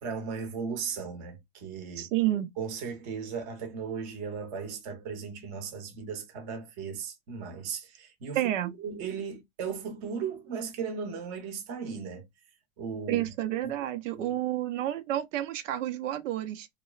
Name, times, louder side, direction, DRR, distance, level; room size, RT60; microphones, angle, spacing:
voice 1, 0.0-2.1 2.6-12.2 12.8-13.3 14.1-14.4, right 6 dB, 30° right, 0.7 m, -37 dB
voice 2, 2.0-2.5 8.4-8.7 13.1-16.7, right 13 dB, 80° right, 0.6 m, -30 dB
2.9 x 2.0 x 2.3 m
supercardioid pair, 170°, 37 cm